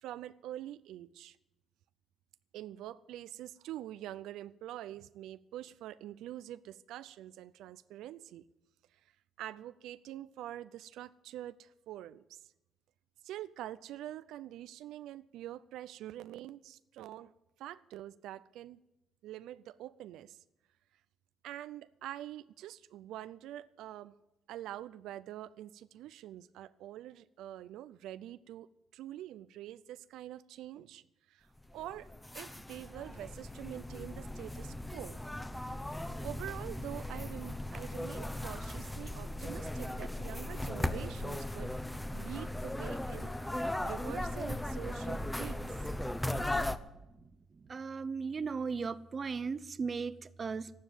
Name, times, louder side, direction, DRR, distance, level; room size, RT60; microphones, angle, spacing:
voice 1, 0.0-1.4 2.5-8.5 8.9-9.1 9.4-12.4 13.2-17.3 17.6-18.8 19.2-20.4 21.4-24.1 24.5-31.5 31.7-35.2 36.2-41.7 42.1-43.3 43.8-45.8, right 13 dB, 90° right, 0.4 m, -45 dB
sound 1, 31.7-46.8, left 1 dB, 10° left, 0.9 m, -38 dB
voice 2, 47.5-50.7, right 5 dB, 40° right, 0.7 m, -37 dB
13.0 x 12.0 x 9.1 m
cardioid pair, 90°, 0 cm